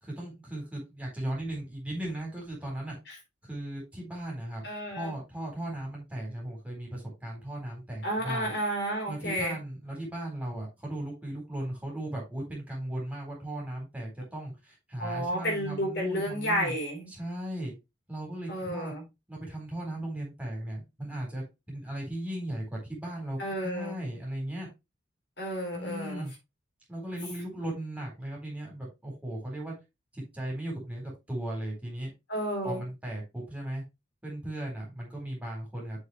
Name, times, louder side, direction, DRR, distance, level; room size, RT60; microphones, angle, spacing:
voice 1, 0.0-3.0 3.4-4.7 4.9-8.5 9.1-16.8 17.1-17.7 18.1-19.0 19.3-24.7 25.7-26.3 26.9-29.7 30.1-32.1 32.6-33.8 34.2-36.0, right 1 dB, 5° right, 3.9 m, -37 dB
voice 2, 4.6-5.1 8.0-9.5 15.0-17.1 18.5-19.0 23.4-24.0 25.4-26.3 32.3-32.8, equal, 60° left, 3.9 m, -31 dB
7.2 x 6.5 x 3.2 m
head